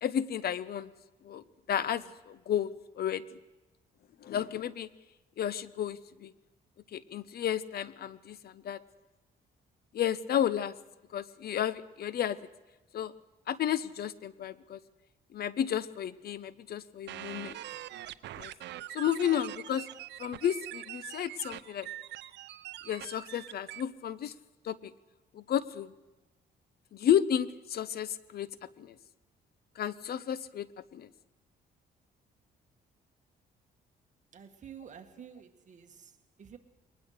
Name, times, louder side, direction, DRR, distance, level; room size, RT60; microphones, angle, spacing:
voice 1, 0.0-0.9 1.2-3.2 4.2-4.9 5.4-6.3 6.9-8.8 9.9-10.7 11.1-12.4 12.9-13.1 13.5-14.8 15.3-17.6 18.4-18.5 18.9-19.9 20.2-21.9 22.8-24.3 24.6-24.9 25.3-25.9 26.9-28.5 28.8-28.9 29.8-31.1, left 10 dB, 60° left, 17 dB, 0.8 m, -32 dB
sound 1, 17.1-23.8, right 14 dB, 85° right, 0.7 m, -43 dB
voice 2, 34.3-36.6, right 8 dB, 45° right, 5 dB, 1.8 m, -50 dB
22.0 x 19.5 x 6.6 m, 1.1 s
cardioid pair, 115°, 18 cm